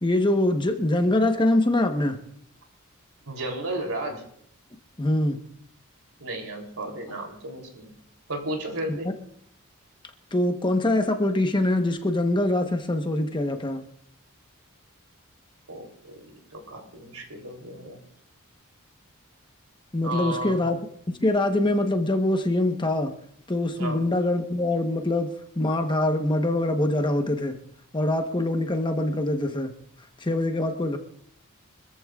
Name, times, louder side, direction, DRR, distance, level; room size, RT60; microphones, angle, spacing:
voice 1, 0.0-2.2 5.0-5.4 10.3-13.8 19.9-20.8 21.1-23.1 23.5-27.6 27.9-29.7 30.2-31.0, left 1 dB, 20° left, 5 dB, 1.0 m, -24 dB
voice 2, 3.3-4.2 6.2-7.9 8.3-9.1 15.7-18.0 20.0-20.7 23.8-24.0, right 1 dB, 85° right, 2 dB, 3.3 m, -34 dB
25.0 x 14.0 x 2.4 m, 0.67 s
head